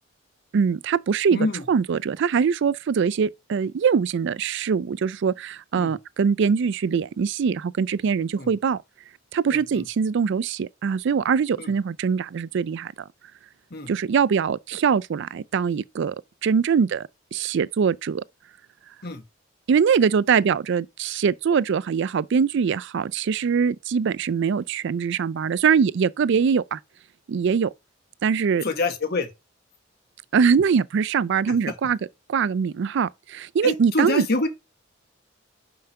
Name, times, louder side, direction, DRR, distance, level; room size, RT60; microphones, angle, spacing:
voice 1, 0.5-8.8 9.3-12.9 13.9-16.2 16.4-17.0 17.3-18.2 19.7-26.8 27.3-27.7 28.2-28.6 30.3-32.0 32.3-34.3, right 6 dB, 60° right, 0.4 m, -22 dB
voice 2, 1.3-1.6 5.8-6.0 8.4-8.5 9.5-9.6 11.6-11.7 13.7-13.9 19.0-19.2 28.6-29.3 33.6-34.5, left 2 dB, 55° left, 1.4 m, -26 dB
5.7 x 4.8 x 5.5 m
head